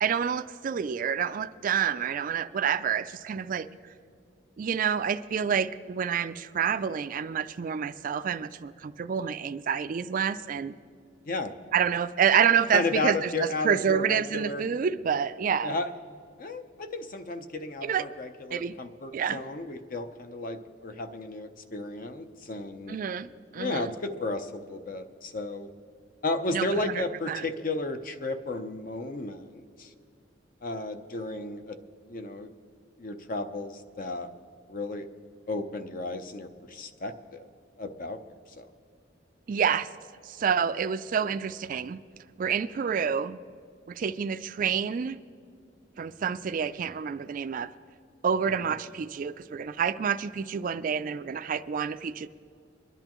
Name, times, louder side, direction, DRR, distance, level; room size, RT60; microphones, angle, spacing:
voice 1, 0.0-3.7 4.6-10.7 11.7-15.8 17.8-18.0 18.5-18.7 19.1-19.4 22.9-23.9 26.5-27.4 39.5-39.9 40.3-42.0 42.4-43.4 43.9-45.2 46.0-47.7 48.2-52.3, right 7 dB, 45° right, 11 dB, 0.3 m, -28 dB
voice 2, 12.7-14.7 15.6-15.9 16.4-23.0 23.6-25.7 26.2-29.9 30.6-31.8 32.1-32.5 33.0-34.3 34.7-35.1 35.5-37.5 37.8-38.2 38.6-38.7 48.6-48.8, left 2 dB, 45° left, 8 dB, 0.6 m, -33 dB
23.0 x 11.0 x 3.0 m, 2.3 s
head